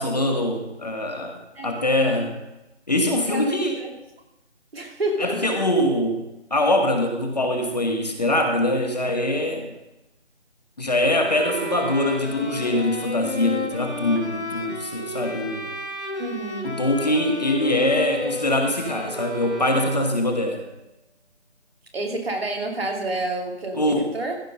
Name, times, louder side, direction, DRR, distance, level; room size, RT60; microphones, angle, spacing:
voice 1, 0.0-2.4 2.9-3.8 5.2-6.2 6.5-9.7 10.8-15.7 16.6-20.6 23.8-24.1, left 1 dB, 35° left, 4 dB, 1.3 m, -23 dB
voice 2, 1.6-2.3 3.2-3.9 4.7-5.6 16.2-16.7 21.9-24.4, right 2 dB, 55° right, 1 dB, 2.8 m, -29 dB
sound 1, 11.2-20.4, left 2 dB, 70° left, 1.8 m, -32 dB
14.5 x 6.1 x 5.4 m, 0.94 s
figure-of-eight pair, 170°, 35 cm